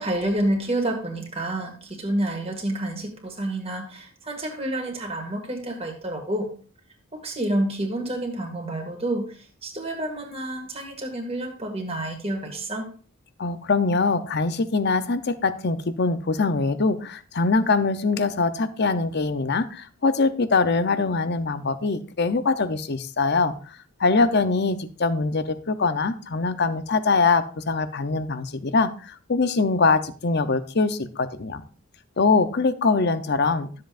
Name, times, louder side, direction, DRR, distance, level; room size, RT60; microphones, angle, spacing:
voice 1, 0.0-6.5 7.1-9.3 9.6-12.9, right 1 dB, 25° right, 2 dB, 1.9 m, -29 dB
voice 2, 13.4-31.6 32.2-33.7, left 4 dB, 50° left, 12 dB, 0.7 m, -23 dB
12.5 x 7.6 x 2.5 m, 0.40 s
head